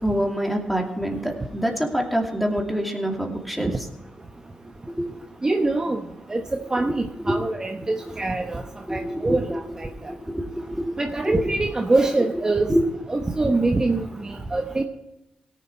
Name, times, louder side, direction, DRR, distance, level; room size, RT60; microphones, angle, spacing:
voice 1, 0.0-3.9 4.9-5.1 6.8-6.9 7.2-7.4 8.9-9.6 9.9-11.0 11.3-11.5 12.7-12.8, equal, ahead, 0 dB, 2.5 m, -26 dB
voice 2, 5.4-6.0 6.3-6.4 6.7-8.6 8.9-9.9 11.0-12.7 13.1-14.8, right 2 dB, 25° right, 3 dB, 1.0 m, -24 dB
17.0 x 7.2 x 4.5 m, 0.94 s
supercardioid pair, 60°, 3 cm